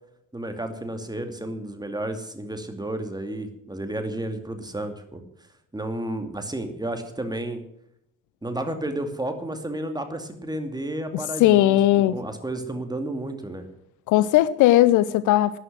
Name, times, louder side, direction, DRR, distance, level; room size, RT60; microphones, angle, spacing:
voice 1, 0.3-5.2 5.7-7.6 8.4-11.8 12.1-13.7, right 1 dB, 10° right, 7 dB, 2.4 m, -32 dB
voice 2, 11.4-12.2 14.1-15.6, left 14 dB, 55° left, 17 dB, 0.6 m, -18 dB
12.5 x 10.0 x 7.8 m, 0.79 s
figure-of-eight pair, 40°, 37 cm